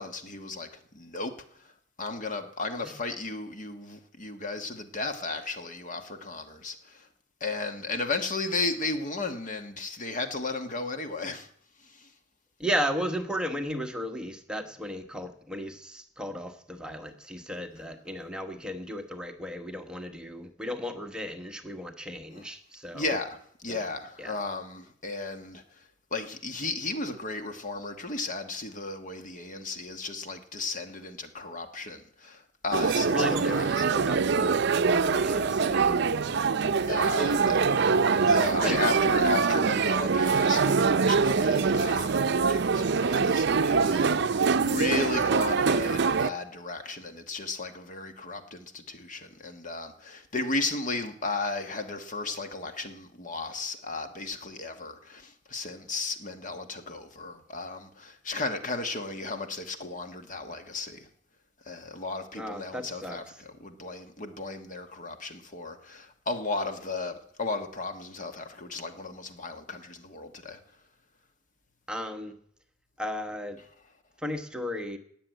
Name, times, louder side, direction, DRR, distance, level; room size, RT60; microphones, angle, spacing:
voice 1, 0.0-1.3 1.6-1.7 2.0-7.1 7.4-11.5 11.8-12.1 22.4-22.5 22.9-25.8 26.1-33.8 36.8-37.6 38.2-61.1 61.6-70.6, left 3 dB, 45° left, 1.4 m, -35 dB
voice 2, 12.6-23.2 23.7-23.8 24.2-24.4 33.1-36.0 36.3-36.8 37.1-38.0 38.6-38.7 62.3-63.2 71.9-72.4 73.0-73.6 74.2-75.0, equal, 5° right, 1.2 m, -35 dB
sound 1, 32.7-46.3, right 5 dB, 60° right, 0.6 m, -24 dB
18.0 x 7.0 x 9.2 m
head